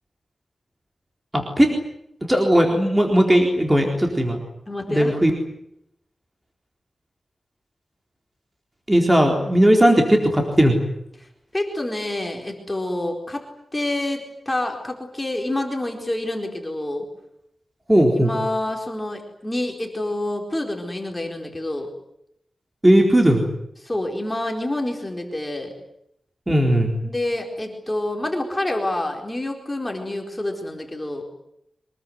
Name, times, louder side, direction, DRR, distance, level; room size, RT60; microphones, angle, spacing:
voice 1, 1.3-1.7 2.3-4.4 4.9-5.3 8.9-10.8 17.9-18.3 22.8-23.5 26.5-26.9, equal, 15° right, 2 dB, 4.0 m, -17 dB
voice 2, 4.7-5.2 11.2-13.5 13.7-17.1 18.2-21.9 23.8-25.7 27.0-31.2, left 1 dB, 15° left, 2 dB, 4.4 m, -27 dB
25.0 x 21.5 x 9.5 m, 0.77 s
wide cardioid pair, 135°, 0 cm